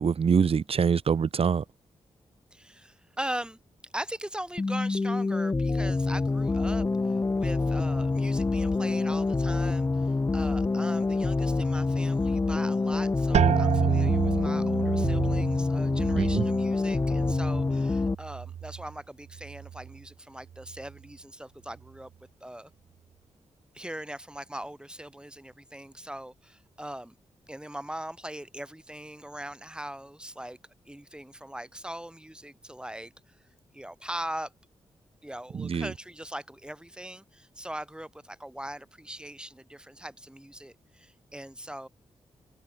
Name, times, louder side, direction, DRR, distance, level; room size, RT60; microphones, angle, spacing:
voice 1, 0.0-1.6 16.2-16.4 35.5-35.9, right 6 dB, 60° right, 1.8 m, -24 dB
voice 2, 2.5-3.6 3.9-22.1 22.4-22.7 23.7-27.1 27.5-30.6 30.9-33.3 33.7-34.5 35.2-41.9, right 1 dB, 10° right, 6.0 m, -40 dB
sound 1, 4.6-18.2, left 3 dB, 25° left, 0.6 m, -26 dB
sound 2, 13.3-19.0 19.3-20.0 20.5-21.0, right 9 dB, 85° right, 0.8 m, -30 dB
cardioid pair, 70°, 11 cm